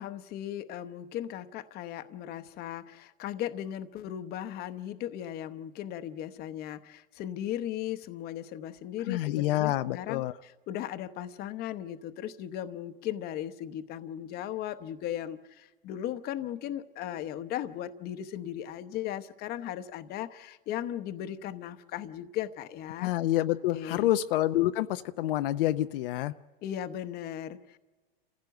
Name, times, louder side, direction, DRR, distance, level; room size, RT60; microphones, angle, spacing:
voice 1, 0.0-23.1 23.7-24.1 26.6-27.8, left 11 dB, 30° left, 10 dB, 0.9 m, -37 dB
voice 2, 9.1-10.3 23.0-26.3, left 14 dB, 65° left, 9 dB, 0.7 m, -27 dB
28.0 x 15.5 x 7.9 m, 1.3 s
supercardioid pair, 140°, 30 cm